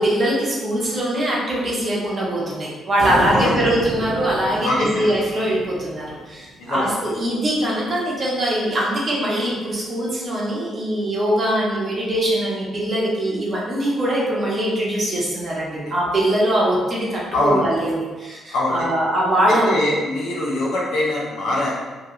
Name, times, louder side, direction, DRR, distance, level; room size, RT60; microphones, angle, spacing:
voice 1, 0.0-19.7, right 1 dB, 45° right, -5 dB, 1.0 m, -22 dB
sound 1, 3.0-6.4, right 1 dB, 20° right, 0.9 m, -30 dB
voice 2, 3.3-3.6 4.6-5.1 6.6-6.9 17.3-17.7 18.5-18.9 19.7-21.8, left 1 dB, 70° left, -4 dB, 0.7 m, -23 dB
2.7 x 2.3 x 3.1 m, 1.3 s
hypercardioid pair, 45°, 0 cm